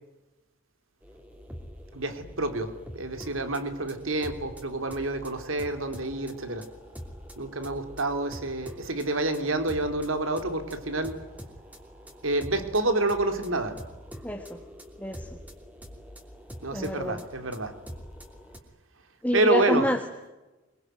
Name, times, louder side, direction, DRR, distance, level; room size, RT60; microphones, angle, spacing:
sound 1, 1.0-18.6, equal, 10° right, 3.0 m, -45 dB
voice 1, 1.9-6.7 7.4-11.2 12.2-13.8 16.6-17.7 19.3-19.9, right 2 dB, 85° right, 8 dB, 3.1 m, -28 dB
voice 2, 14.2-14.6 15.0-15.4 16.7-17.2 19.2-20.0, equal, 5° left, 3 dB, 1.5 m, -27 dB
23.5 x 23.0 x 9.2 m, 1.1 s
head